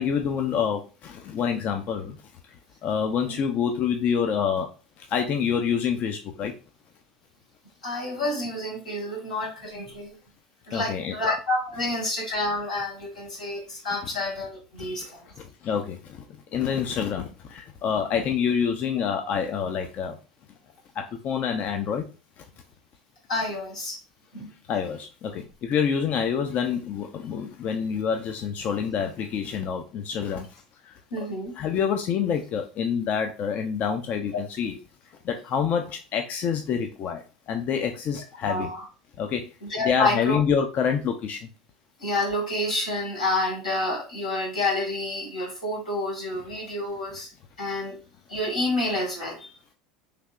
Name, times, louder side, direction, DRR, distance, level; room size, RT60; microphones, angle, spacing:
voice 1, 0.0-2.2 2.8-6.5 10.7-11.2 15.0-15.1 15.6-16.2 16.5-20.2 21.0-22.0 22.4-22.5 24.7-31.3 31.5-34.8 35.2-38.7 39.2-39.5 39.8-41.5, left 7 dB, 45° left, 4 dB, 0.5 m, -27 dB
voice 2, 7.8-10.1 10.7-15.0 23.3-24.0 24.3-24.5 31.1-31.5 38.5-38.8 39.7-40.4 42.0-47.3 47.6-47.9 48.3-49.5, left 2 dB, 90° left, -4 dB, 1.5 m, -28 dB
3.3 x 2.8 x 2.4 m, 0.33 s
hypercardioid pair, 80°, 4 cm